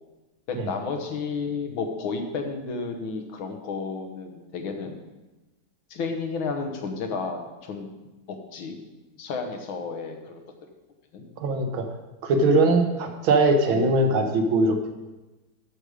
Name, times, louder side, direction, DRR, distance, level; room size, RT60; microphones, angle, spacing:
voice 1, 0.5-5.0 5.9-7.9 8.3-8.8 9.2-10.4 11.1-11.3 12.8-12.9 13.7-13.9, left 4 dB, 85° left, 4 dB, 1.8 m, -32 dB
voice 2, 11.4-11.9 12.2-15.0, right 2 dB, 80° right, 5 dB, 1.8 m, -21 dB
12.5 x 4.9 x 5.0 m, 1.1 s
omnidirectional pair, 2.2 m